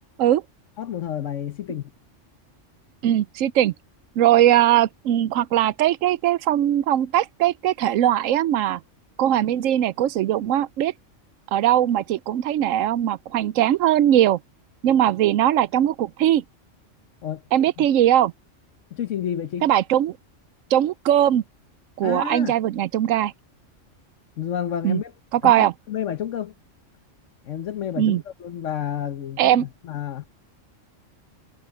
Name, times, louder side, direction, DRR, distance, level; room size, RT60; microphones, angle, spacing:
voice 1, 0.8-1.9 17.2-17.4 17.8-17.9 18.9-19.7 22.0-22.6 24.4-25.1 25.4-26.5 27.4-30.3, left 9 dB, 75° left, 1.3 m, -30 dB
voice 2, 3.0-3.7 4.2-8.8 9.2-10.9 11.5-14.4 14.8-16.4 17.5-18.3 19.6-20.2 20.7-21.4 22.0-23.3 24.8-25.0 25.3-25.7 28.0-28.2 29.4-29.7, right 12 dB, 90° right, 1.0 m, -20 dB
omnidirectional pair, 1.3 m